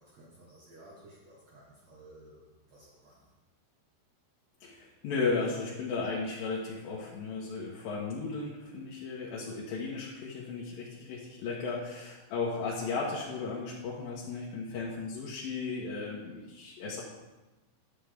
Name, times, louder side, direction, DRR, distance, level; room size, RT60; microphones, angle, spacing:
voice 1, 0.0-3.3, right 1 dB, 80° right, -5 dB, 1.5 m, -55 dB
voice 2, 4.6-17.0, left 4 dB, 70° left, -5 dB, 2.3 m, -35 dB
11.5 x 7.6 x 3.5 m, 1.1 s
omnidirectional pair, 5.4 m